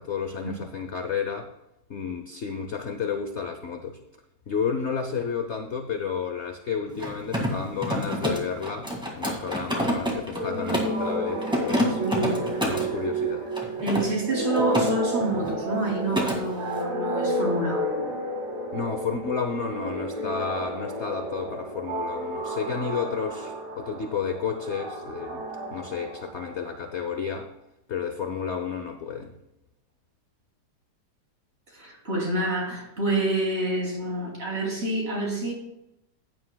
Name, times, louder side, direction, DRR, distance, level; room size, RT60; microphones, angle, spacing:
voice 1, 0.0-1.5 1.9-4.0 4.5-12.0 12.6-13.5 18.7-27.5 27.9-29.3, left 6 dB, 55° left, 6 dB, 0.8 m, -31 dB
Mechanisms, 6.9-11.0 11.4-12.9 13.5-14.9 15.2-15.5 15.8-16.4, equal, 5° right, 1.8 m, -28 dB
sound 1, 10.3-26.7, right 1 dB, 70° right, 4.8 m, -31 dB
voice 2, 12.0-12.5 13.8-18.1 31.7-35.5, right 2 dB, 40° right, -2 dB, 3.0 m, -28 dB
15.0 x 9.6 x 2.3 m, 0.88 s
omnidirectional pair, 1.9 m